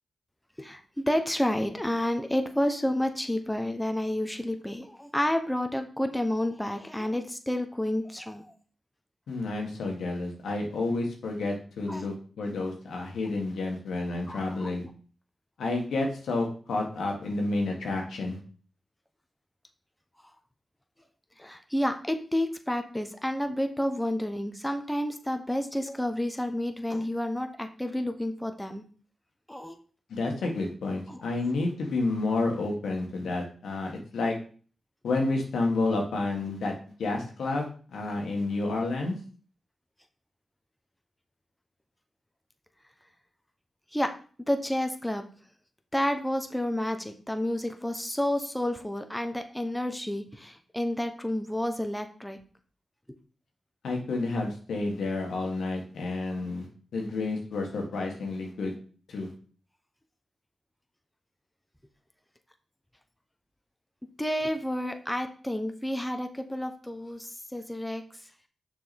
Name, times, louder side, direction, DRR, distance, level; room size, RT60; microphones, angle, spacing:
voice 1, 0.6-8.5 11.9-12.0 14.3-14.9 21.4-28.8 29.5-29.8 31.1-31.2 43.9-44.1 44.5-45.2 45.9-52.4 64.2-68.0, left 1 dB, 5° left, 6 dB, 0.9 m, -30 dB
voice 2, 9.3-14.8 15.6-18.4 30.1-34.3 35.0-36.7 37.0-39.1 53.8-56.7 56.9-58.7 59.1-59.3, left 2 dB, 90° left, 1 dB, 1.6 m, -30 dB
6.3 x 4.8 x 4.3 m, 0.41 s
cardioid pair, 55°, 0 cm